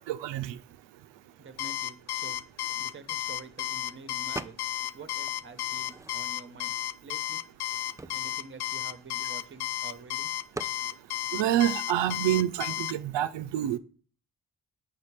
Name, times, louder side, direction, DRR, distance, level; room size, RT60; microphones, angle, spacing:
voice 1, 0.1-0.5 11.3-13.8, right 12 dB, 90° right, 0.5 m, -27 dB
voice 2, 1.4-2.4 2.8-4.6 4.9-6.7 7.0-7.5 8.1-10.3, right 4 dB, 30° right, 0.9 m, -48 dB
Alarm, 1.6-12.9, left 14 dB, 65° left, 0.5 m, -33 dB
sound 1, 4.3-4.9 5.3-6.5 7.1-7.2 7.5-9.7 10.5-10.8, right 2 dB, 10° right, 0.3 m, -42 dB
7.5 x 4.3 x 4.7 m
supercardioid pair, 50°, 42 cm